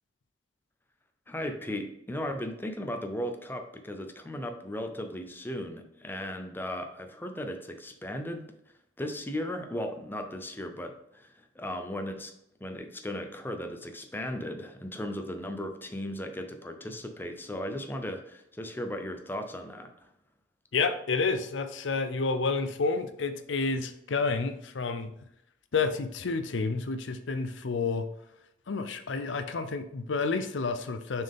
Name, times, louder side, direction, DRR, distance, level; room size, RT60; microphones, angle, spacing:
voice 1, 1.3-8.4 9.0-12.3 12.6-20.1, left 1 dB, 10° left, 5 dB, 0.6 m, -36 dB
voice 2, 20.7-25.1 25.7-28.1 28.7-31.2, left 4 dB, 80° left, 10 dB, 0.6 m, -30 dB
6.4 x 4.5 x 3.6 m, 0.78 s
head